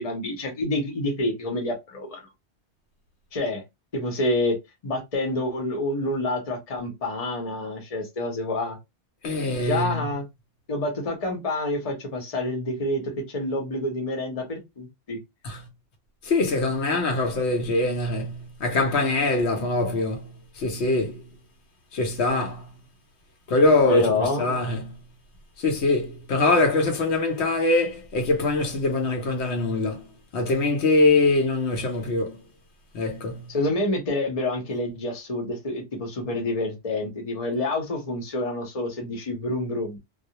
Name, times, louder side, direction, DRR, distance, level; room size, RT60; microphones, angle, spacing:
voice 1, 0.0-2.2 3.3-3.6 3.9-4.6 4.8-8.8 9.6-10.2 10.7-15.2 23.8-24.5 33.5-40.0, left 2 dB, 35° left, 0.8 m, -28 dB
voice 2, 9.2-10.1 15.4-15.7 16.2-21.2 21.9-22.7 23.5-25.0 25.6-30.1 30.3-32.4 32.9-33.5, left 2 dB, 75° left, 0.9 m, -23 dB
2.3 x 2.0 x 2.8 m
omnidirectional pair, 1.2 m